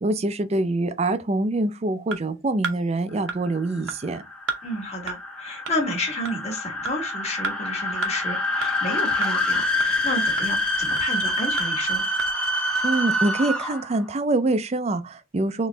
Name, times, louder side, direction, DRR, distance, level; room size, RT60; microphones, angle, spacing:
voice 1, 0.0-4.2 12.8-15.7, right 2 dB, 30° right, 0.4 m, -25 dB
sound 1, 2.1-2.2 2.6-2.8 3.3-3.4 3.9-4.0 4.5-4.6 5.1-5.2 5.7-5.8 6.3-6.4 6.9-7.0 7.4-7.6 8.0-8.1 8.6-8.7 9.2-9.3 9.8-9.9 10.4-10.5 11.0-11.1 11.6-11.7 12.2-12.3, right 4 dB, 70° right, 0.7 m, -29 dB
sound 2, 3.3-14.0, left 1 dB, 5° left, 0.7 m, -26 dB
voice 2, 4.6-12.0, left 1 dB, 30° left, 1.4 m, -31 dB
4.1 x 3.0 x 3.3 m
head